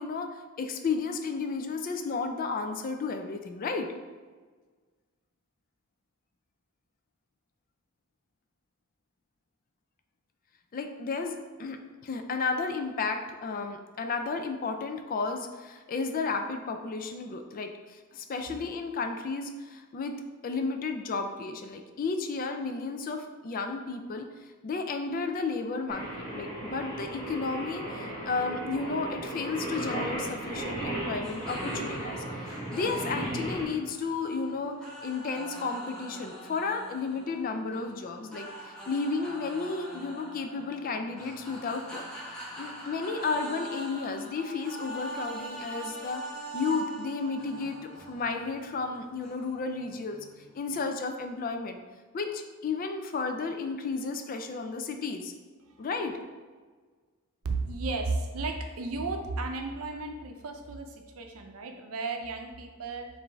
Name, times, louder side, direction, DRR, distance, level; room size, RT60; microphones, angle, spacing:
voice 1, 0.0-3.9 10.7-24.3 24.6-34.7 35.0-42.1 42.6-46.2 46.5-50.2 50.5-51.8 52.1-55.3 55.8-56.1, left 4 dB, 40° left, 6 dB, 0.3 m, -33 dB
Singing, 25.9-33.6, right 1 dB, 20° left, 1.5 m, -35 dB
sound 1, 31.2-50.7, right 1 dB, 5° left, 1.4 m, -44 dB
voice 2, 57.4-63.1, right 3 dB, 75° right, 4 dB, 0.6 m, -34 dB
5.0 x 2.6 x 3.3 m, 1.4 s
head